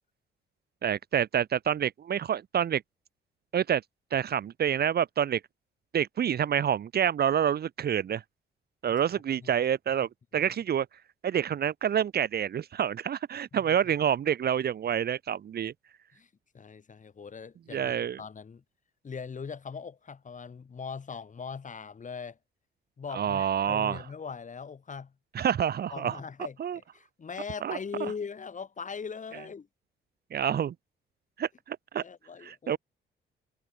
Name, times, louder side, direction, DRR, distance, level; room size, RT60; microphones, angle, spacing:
voice 1, 0.8-2.8 3.5-3.8 4.1-5.4 5.9-8.2 8.8-10.9 11.2-15.7 17.7-18.2 23.1-24.0 25.3-26.2 26.6-26.8 27.6-27.8 30.3-30.7 31.4-32.0 32.4-32.8, right 9 dB, 55° right, 1.1 m, -28 dB
voice 2, 16.5-18.6 19.0-22.4 23.0-25.1 25.9-29.7 32.0-32.8, left 5 dB, 40° left, 5.8 m, -40 dB
cardioid pair, 90°, 20 cm